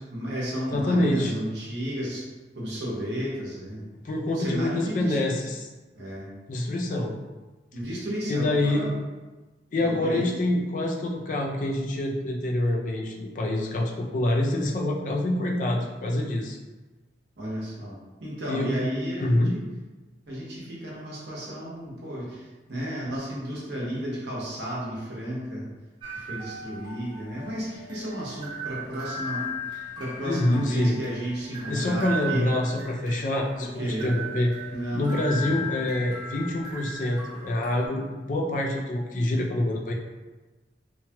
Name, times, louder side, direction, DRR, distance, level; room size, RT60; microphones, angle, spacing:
voice 1, 0.1-2.2 2.5-3.8 4.3-5.2 5.9-6.3 7.7-9.0 9.8-10.3 17.4-19.7 20.3-25.6 26.1-32.5 33.6-34.1 34.7-35.7, equal, 70° right, -5 dB, 0.9 m, -33 dB
voice 2, 0.7-1.3 4.0-5.7 6.5-7.1 8.3-8.9 9.7-16.6 18.5-18.9 19.2-19.6 30.2-31.0 31.7-34.5 34.9-39.9, left 1 dB, 45° left, 0 dB, 0.4 m, -26 dB
sound 1, 26.0-37.9, equal, 25° right, 0.5 m, -37 dB
3.0 x 2.2 x 2.8 m, 1.2 s
head